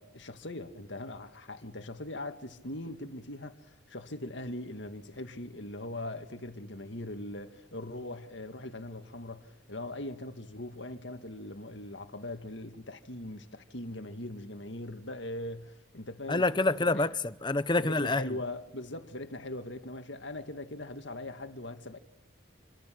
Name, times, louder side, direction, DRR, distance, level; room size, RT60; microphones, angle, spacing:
voice 1, 0.0-16.5 16.8-17.1 17.8-22.0, left 1 dB, 65° left, 2.1 m, -41 dB
voice 2, 16.3-18.3, left 2 dB, 20° left, 0.9 m, -27 dB
28.0 x 25.0 x 7.8 m
head